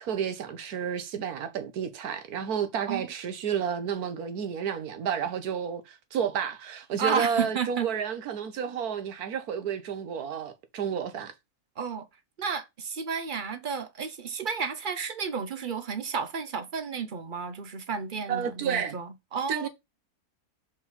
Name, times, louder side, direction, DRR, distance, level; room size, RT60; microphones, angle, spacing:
voice 1, 0.0-11.3 18.3-19.0 19.5-19.7, right 7 dB, 85° right, 1.5 m, -31 dB
voice 2, 7.0-7.9 11.8-12.1 12.4-19.7, right 6 dB, 50° right, 0.6 m, -32 dB
5.0 x 4.2 x 5.7 m
omnidirectional pair, 1.6 m